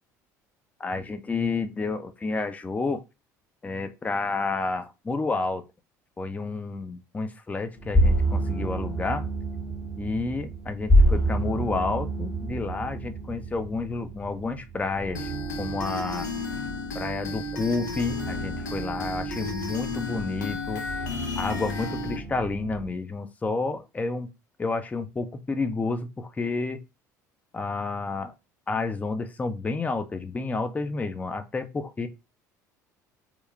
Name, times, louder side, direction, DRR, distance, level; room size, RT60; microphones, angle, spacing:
voice 1, 0.8-3.0 3.6-5.6 6.2-9.3 10.0-15.3 15.6-16.3 16.9-20.8 21.4-24.3 24.6-26.8 27.5-28.3 28.7-32.1, left 3 dB, 15° left, 0.4 m, -30 dB
sound 1, 7.8-22.9, right 1 dB, 35° left, 1.1 m, -29 dB
sound 2, 15.1-22.2, left 3 dB, 90° left, 0.5 m, -33 dB
2.9 x 2.3 x 2.4 m
hypercardioid pair, 65°, 9 cm